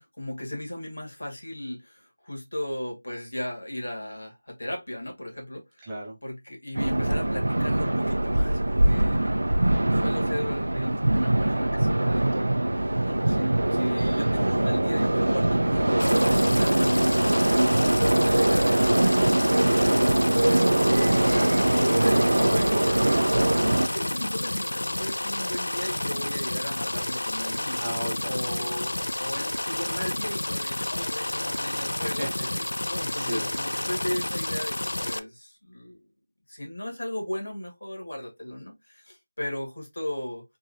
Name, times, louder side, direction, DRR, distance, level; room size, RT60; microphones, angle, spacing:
voice 1, 0.0-5.9 6.2-9.3 9.6-12.6 13.0-23.0 23.6-27.8 28.3-32.3 32.8-34.8 35.0-36.0 36.5-40.4, left 1 dB, 65° left, 1.9 m, -36 dB
voice 2, 5.8-6.2 20.3-20.9 22.3-22.8 27.8-28.7 32.0-33.6, right 1 dB, 10° right, 0.6 m, -37 dB
sound 1, 6.7-23.9, right 1 dB, 90° right, 0.4 m, -22 dB
sound 2, 16.0-35.2, left 1 dB, 85° left, 0.4 m, -30 dB
3.6 x 3.0 x 2.7 m
figure-of-eight pair, 180°, 0 cm